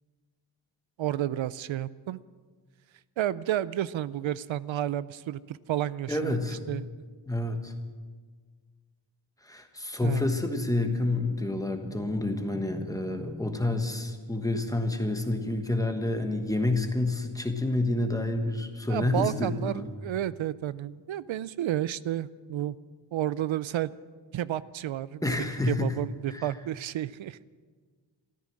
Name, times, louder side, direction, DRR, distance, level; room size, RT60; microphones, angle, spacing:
voice 1, 1.0-2.2 3.2-6.4 6.7-6.9 10.0-10.3 18.9-22.8 23.1-23.9 24.3-25.2 25.7-27.4, right 12 dB, 80° right, 18 dB, 0.5 m, -31 dB
voice 2, 6.1-6.8 7.3-7.7 9.4-19.9 25.2-25.9 26.3-26.5, left 2 dB, 10° left, 5 dB, 1.2 m, -29 dB
14.0 x 13.5 x 7.6 m, 1.5 s
wide cardioid pair, 180°, 46 cm